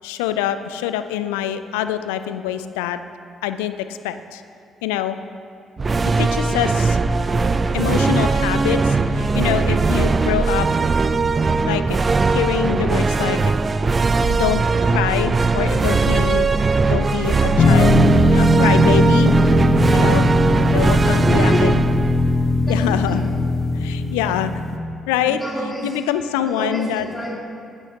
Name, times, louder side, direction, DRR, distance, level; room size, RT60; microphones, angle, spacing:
voice 1, 0.0-3.0 3.4-4.4 4.8-5.3 6.2-7.0 7.7-10.7 11.7-12.0 12.3-13.5 14.4-16.5 16.9-18.0 18.3-19.3 19.9-20.3 20.7-21.8 22.6-23.2 23.8-24.5 25.1-25.4 25.8-27.0, left 11 dB, 85° left, 11 dB, 0.3 m, -24 dB
sound 1, 5.8-23.2, right 3 dB, 35° right, 0.4 m, -19 dB
sound 2, 17.6-24.8, left 1 dB, 50° left, 0.7 m, -18 dB
voice 2, 21.0-21.7 22.5-23.3 25.2-26.0 26.4-27.3, left 1 dB, 25° left, -3 dB, 2.1 m, -28 dB
11.0 x 8.9 x 2.8 m, 2.5 s
hypercardioid pair, 45°, 0 cm